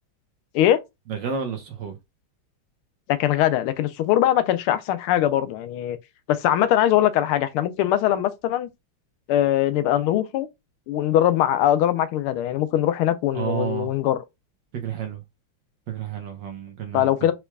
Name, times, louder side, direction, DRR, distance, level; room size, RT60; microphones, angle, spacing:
voice 1, 1.1-2.0 13.3-13.9 14.7-15.2 15.9-17.1, right 7 dB, 60° right, 1.5 m, -30 dB
voice 2, 3.1-6.0 6.3-8.7 9.3-10.5 10.9-14.2 16.9-17.3, left 12 dB, 85° left, 1.5 m, -21 dB
4.6 x 4.6 x 2.3 m
omnidirectional pair, 2.4 m